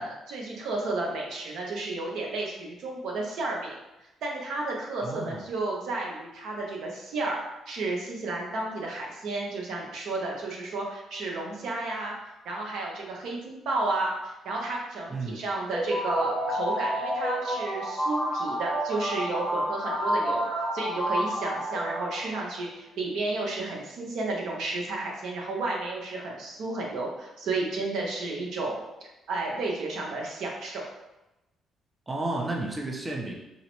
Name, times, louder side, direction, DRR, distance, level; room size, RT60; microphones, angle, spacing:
voice 1, 0.0-3.7 4.2-7.4 7.7-12.1 12.4-20.5 20.7-28.8 29.3-30.9, right 2 dB, 75° right, -1 dB, 0.7 m, -32 dB
voice 2, 5.0-5.4 15.1-15.4 32.1-33.3, right 2 dB, 20° right, -1 dB, 0.5 m, -32 dB
sound 1, 15.7-22.5, equal, ahead, 1.0 m, -29 dB
3.8 x 2.0 x 3.0 m, 0.95 s
cardioid pair, 90°, 0 cm